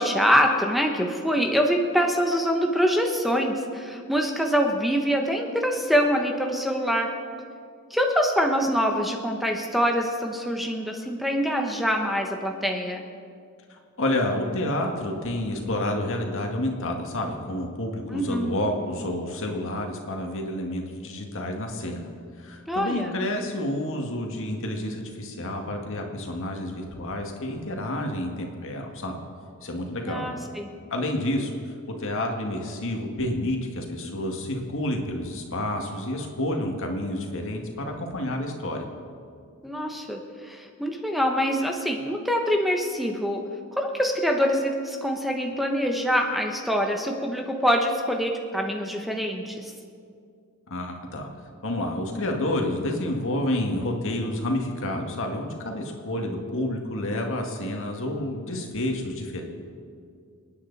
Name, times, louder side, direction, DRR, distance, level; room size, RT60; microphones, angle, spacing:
voice 1, 0.0-7.2 7.9-13.0 18.1-18.5 22.7-23.1 30.0-30.7 39.6-43.4 43.8-49.7, equal, ahead, 2 dB, 1.0 m, -25 dB
voice 2, 13.7-22.1 22.4-29.2 29.6-30.3 30.9-38.8 50.7-51.3 51.6-59.4, left 1 dB, 60° left, 2 dB, 2.0 m, -29 dB
28.5 x 9.7 x 4.1 m, 2.3 s
head